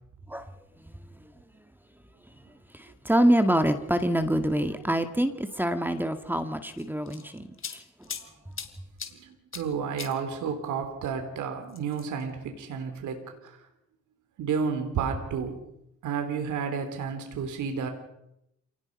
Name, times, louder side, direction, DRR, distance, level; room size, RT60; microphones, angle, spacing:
voice 1, 0.8-1.2 2.7-8.1, right 1 dB, 5° right, 9 dB, 1.9 m, -26 dB
sound 1, 6.8-8.3 8.6-9.1 9.5-9.7 10.0-10.1 11.7-12.2, left 6 dB, 45° left, 2.8 m, -38 dB
voice 2, 9.1-13.6 14.4-15.6 16.0-17.9, right 6 dB, 80° right, 6 dB, 3.6 m, -31 dB
28.0 x 19.0 x 5.4 m, 0.82 s
cardioid pair, 90°, 30 cm